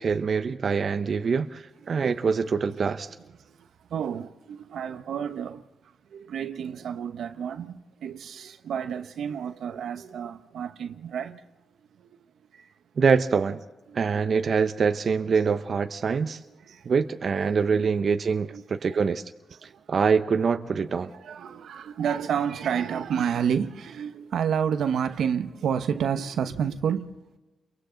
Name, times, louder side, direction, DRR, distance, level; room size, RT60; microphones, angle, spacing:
voice 1, 0.0-3.2 13.0-13.6 13.9-16.4 16.8-19.2 19.6-21.1, right 5 dB, 55° right, 0.8 m, -24 dB
voice 2, 3.4-5.6 6.1-11.4 12.0-12.2 12.5-12.7 13.9-14.0 16.6-16.9 17.4-17.8 18.5-18.6 18.9-19.0 19.6-19.9 21.0-27.1, right 8 dB, 80° right, 1.0 m, -30 dB
30.0 x 23.5 x 3.9 m
cardioid pair, 80°, 0 cm